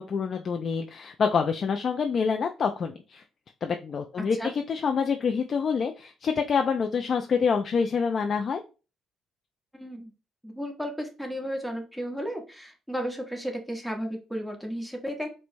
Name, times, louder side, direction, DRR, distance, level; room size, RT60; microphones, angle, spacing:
voice 1, 0.0-3.2 3.6-8.6, left 6 dB, 45° left, 5 dB, 0.3 m, -27 dB
voice 2, 4.2-4.5 9.7-10.1 10.4-15.3, equal, ahead, 3 dB, 0.8 m, -34 dB
4.5 x 2.1 x 2.6 m, 0.32 s
cardioid pair, 110°, 0 cm